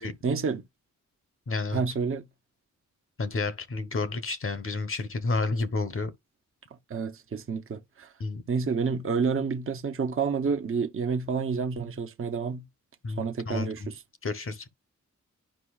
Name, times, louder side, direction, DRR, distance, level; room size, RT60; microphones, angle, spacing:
voice 1, 0.2-0.6 1.7-2.2 6.9-8.1 8.5-12.6 13.2-13.9, right 5 dB, 45° right, 0.7 m, -29 dB
voice 2, 1.5-1.8 3.2-6.1 8.2-8.4 13.0-13.9 14.2-14.7, left 3 dB, 45° left, 0.9 m, -30 dB
10.0 x 5.4 x 2.3 m
wide cardioid pair, 150°, 30 cm